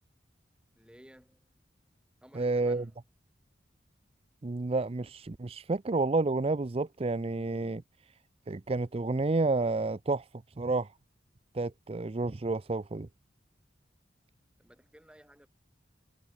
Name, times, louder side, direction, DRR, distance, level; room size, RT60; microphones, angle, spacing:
voice 1, 0.7-1.5 2.2-3.0 14.6-15.5, equal, 5° right, 6.9 m, -56 dB
voice 2, 2.3-2.8 4.4-7.8 8.5-10.2 10.6-10.9 11.5-13.1, right 3 dB, 35° right, 0.5 m, -30 dB
head